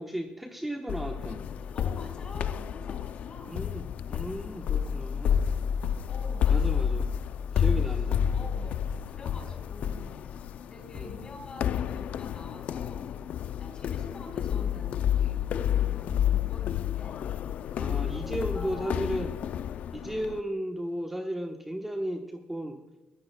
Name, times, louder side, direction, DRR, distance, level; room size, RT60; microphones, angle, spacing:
voice 1, 0.0-1.5 3.4-5.5 6.5-7.1 7.5-8.4 10.9-11.2 17.8-19.4 19.9-22.8, right 1 dB, 5° right, 3 dB, 1.0 m, -35 dB
sound 1, 0.9-20.4, left 8 dB, 60° left, 0.4 m, -30 dB
voice 2, 1.6-3.6 5.8-6.9 7.8-8.1 8.3-17.2 17.7-19.1, left 2 dB, 35° left, 3 dB, 4.0 m, -47 dB
21.0 x 14.0 x 2.2 m, 1.0 s
cardioid pair, 120°, 3 cm